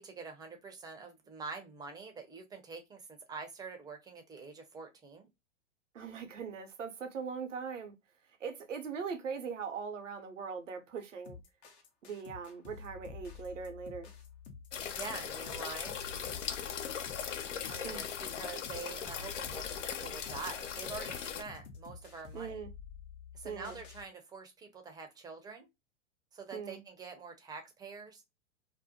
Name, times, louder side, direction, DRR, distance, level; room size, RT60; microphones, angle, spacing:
voice 1, 0.0-5.3 15.0-16.0 17.7-22.6 23.3-25.7 26.3-28.2, right 4 dB, 10° right, 0.5 m, -46 dB
voice 2, 5.9-7.9 8.4-11.4 12.0-14.1 17.8-18.0 22.3-22.7 23.4-23.8 26.5-26.8, right 6 dB, 85° right, 0.7 m, -40 dB
sound 1, 11.2-24.0, left 6 dB, 60° left, 0.9 m, -50 dB
sound 2, 14.7-21.4, left 8 dB, 80° left, 0.5 m, -39 dB
2.5 x 2.1 x 2.7 m
hypercardioid pair, 100°, 36 cm